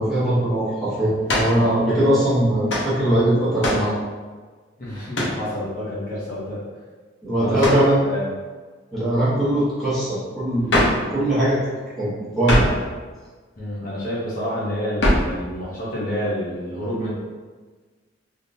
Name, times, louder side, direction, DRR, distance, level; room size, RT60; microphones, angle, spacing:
voice 1, 0.0-3.9 7.2-8.0 8.9-11.6 12.0-12.7, right 1 dB, ahead, -12 dB, 1.3 m, -21 dB
sound 1, 1.3-1.6 2.7-2.9 3.6-3.9 5.1-5.4 7.6-7.9 10.7-11.1 12.4-12.8 15.0-15.4, left 1 dB, 75° left, 0.8 m, -21 dB
voice 2, 4.8-6.6 7.4-8.3 13.6-17.1, equal, 45° left, -8 dB, 0.9 m, -28 dB
3.5 x 2.8 x 2.7 m, 1.4 s
head